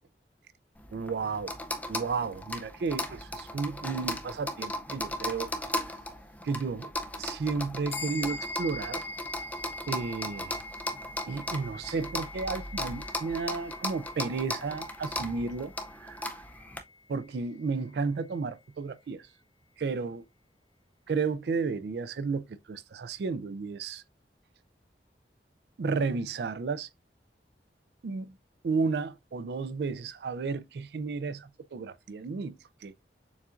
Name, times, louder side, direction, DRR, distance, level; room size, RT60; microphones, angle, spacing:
sound 1, 0.8-16.8, left 1 dB, 10° left, 0.4 m, -37 dB
voice 1, 0.9-1.5 1.9-5.5 6.4-6.9 7.2-9.0 9.9-10.6 11.3-15.7 16.0-16.3 17.1-19.2 19.8-20.2 21.1-24.0 25.8-26.9 28.0-28.3 28.6-33.0, right 4 dB, 70° right, 0.4 m, -33 dB
sound 2, 7.9-17.6, left 2 dB, 35° left, 1.4 m, -43 dB
6.9 x 2.5 x 2.4 m
head